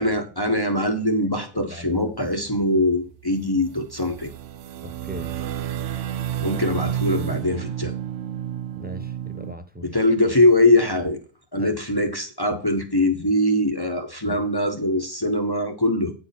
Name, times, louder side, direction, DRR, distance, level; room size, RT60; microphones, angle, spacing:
voice 1, 0.0-4.3 6.4-7.9 9.8-11.2 11.5-16.1, left 1 dB, 20° left, 1.1 m, -22 dB
voice 2, 1.5-2.1 4.8-5.3 8.8-9.9 11.6-11.7 14.2-14.4, equal, 10° right, 0.7 m, -38 dB
sound 1, 1.9-2.6 3.2-3.3 3.6-9.5, right 11 dB, 70° right, 0.9 m, -31 dB
9.5 x 4.7 x 5.8 m
omnidirectional pair, 1.3 m